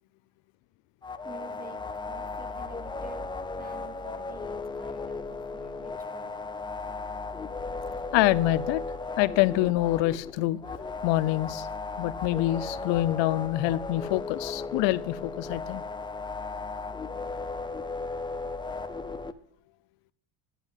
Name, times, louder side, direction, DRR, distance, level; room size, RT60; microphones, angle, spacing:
sound 1, 1.0-19.3, left 3 dB, 10° left, 0.3 m, -36 dB
voice 1, 1.2-3.3 3.6-6.4, right 4 dB, 20° right, 8 dB, 1.5 m, -49 dB
voice 2, 8.1-8.8 9.2-10.6 11.0-11.7 12.0-15.8, left 16 dB, 70° left, 17 dB, 0.6 m, -26 dB
11.0 x 10.5 x 3.6 m, 0.75 s
cardioid pair, 115°, 45 cm